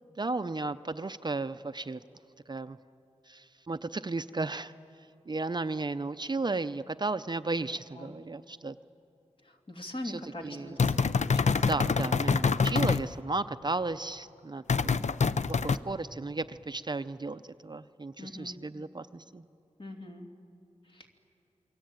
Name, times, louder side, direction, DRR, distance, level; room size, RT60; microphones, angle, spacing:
voice 1, 0.2-2.0 2.5-2.8 3.3-4.7 5.3-8.7 10.0-10.8 11.6-15.0 15.5-19.4, right 3 dB, 35° right, 11 dB, 0.5 m, -34 dB
voice 2, 9.4-11.8 15.7-16.0 18.2-18.6 19.8-20.3 20.8-21.1, left 1 dB, 45° left, 2 dB, 2.7 m, -43 dB
sound 1, 10.8-13.0 14.7-15.8, left 5 dB, 65° left, 0.6 m, -26 dB
28.0 x 23.0 x 9.0 m, 2.7 s
wide cardioid pair, 100°, 13 cm